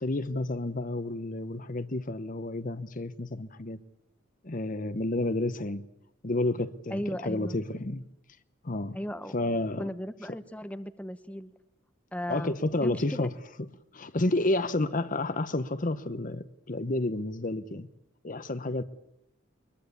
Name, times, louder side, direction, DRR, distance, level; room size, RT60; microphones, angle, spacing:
voice 1, 0.0-3.8 4.4-5.8 6.2-8.1 8.6-9.0 9.3-9.9 12.3-13.3 13.9-17.9 18.2-18.8, left 2 dB, 40° left, 0.9 m, -30 dB
voice 2, 6.9-7.6 8.9-9.3 9.8-11.5 12.1-12.5 12.8-13.3, equal, 5° left, 0.9 m, -36 dB
22.5 x 21.5 x 8.5 m
head